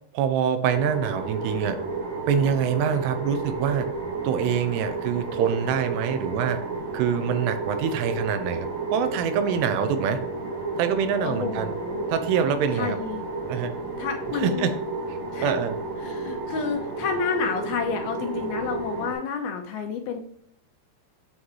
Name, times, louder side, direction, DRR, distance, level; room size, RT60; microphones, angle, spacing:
voice 1, 0.1-1.8 2.3-3.9 4.2-6.6 6.9-10.2 10.8-11.8 12.1-13.0 13.5-13.7 14.3-14.7 15.1-15.8, right 7 dB, 85° right, 9 dB, 2.8 m, -25 dB
sound 1, 0.7-19.1, right 3 dB, 50° right, 1.5 m, -32 dB
voice 2, 11.2-12.1 12.7-13.2 14.0-14.7 15.3-15.5 16.0-20.2, left 6 dB, 75° left, 3 dB, 2.5 m, -30 dB
8.5 x 3.9 x 3.1 m, 0.62 s
omnidirectional pair, 4.8 m